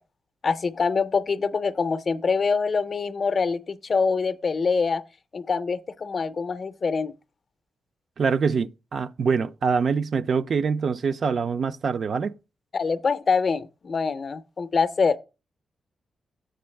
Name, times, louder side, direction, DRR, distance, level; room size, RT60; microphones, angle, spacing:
voice 1, 0.4-5.0 5.3-7.1 12.7-15.2, left 5 dB, 40° left, 0.5 m, -25 dB
voice 2, 8.2-12.3, right 5 dB, 50° right, 0.3 m, -24 dB
7.7 x 6.8 x 3.3 m
wide cardioid pair, 125°, 0 cm